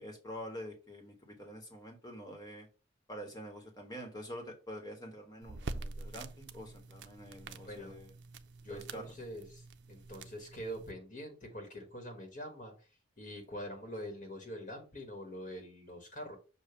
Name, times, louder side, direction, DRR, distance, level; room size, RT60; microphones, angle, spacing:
voice 1, 0.0-2.7 3.1-8.1 8.7-9.1, equal, 20° left, 2 dB, 1.5 m, -46 dB
sound 1, 5.4-10.9, right 3 dB, 70° right, 0.6 m, -46 dB
voice 2, 7.7-8.0 8.6-12.9 13.2-16.4, equal, 40° left, 3 dB, 1.5 m, -44 dB
6.8 x 2.6 x 5.6 m, 0.33 s
head